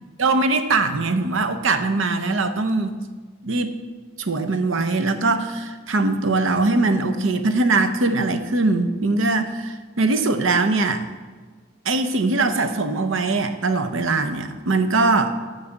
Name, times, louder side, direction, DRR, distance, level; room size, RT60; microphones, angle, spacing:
voice 1, 0.2-3.0 3.4-3.7 4.2-11.1 11.8-15.4, right 3 dB, 65° right, 9 dB, 0.7 m, -21 dB
8.9 x 5.5 x 7.1 m, 1.4 s
head